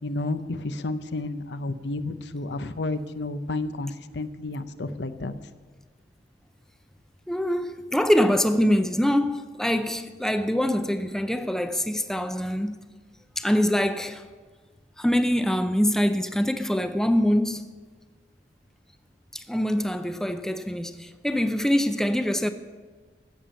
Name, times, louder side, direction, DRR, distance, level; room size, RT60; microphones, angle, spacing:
voice 1, 0.0-5.3, left 2 dB, 75° left, 0.7 m, -31 dB
voice 2, 7.3-12.8 13.4-14.2 15.0-17.6 19.3-22.5, equal, 5° left, 0.5 m, -24 dB
15.5 x 7.1 x 7.5 m
head